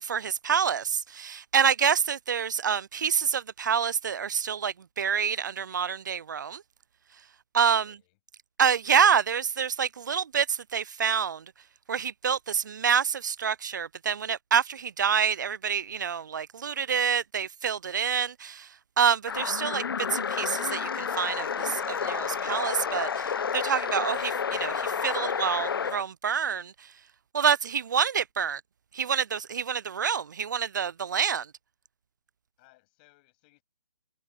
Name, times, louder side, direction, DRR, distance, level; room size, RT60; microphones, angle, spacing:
voice 1, 0.0-6.6 7.5-7.9 8.6-11.4 11.9-18.7 19.0-19.8 20.1-26.7 27.3-28.6 28.9-31.5, right 7 dB, 45° right, 0.4 m, -27 dB
voice 2, 7.7-8.2 32.6-33.6, left 23 dB, 20° left, 7.9 m, -63 dB
sound 1, 19.3-26.0, left 6 dB, 60° left, 1.1 m, -30 dB
hypercardioid pair, 170°, 14 cm